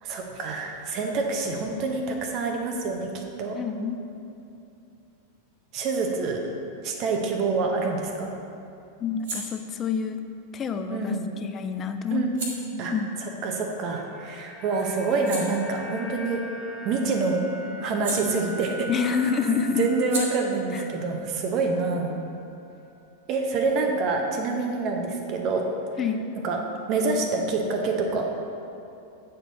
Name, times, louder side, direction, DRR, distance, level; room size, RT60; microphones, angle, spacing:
voice 1, 0.0-3.6 5.7-6.5 6.8-8.3 10.9-11.3 12.1-12.9 13.2-16.4 16.8-17.4 17.8-18.9 19.8-22.1 23.3-25.6 26.4-26.6 26.9-28.2, right 3 dB, 40° right, 2 dB, 0.8 m, -27 dB
voice 2, 3.5-4.0 9.0-10.2 10.5-12.3 12.9-13.1 18.9-19.9 20.7-20.9 26.0-26.2, left 6 dB, 25° left, 7 dB, 0.4 m, -27 dB
sound 1, 8.7-14.3 14.7-19.0 19.2-22.6, right 1 dB, 55° right, 1.6 m, -41 dB
sound 2, 13.6-21.9 22.2-22.4, equal, 5° right, 1.6 m, -41 dB
9.0 x 4.5 x 4.0 m, 2.7 s
figure-of-eight pair, 90°, 0 cm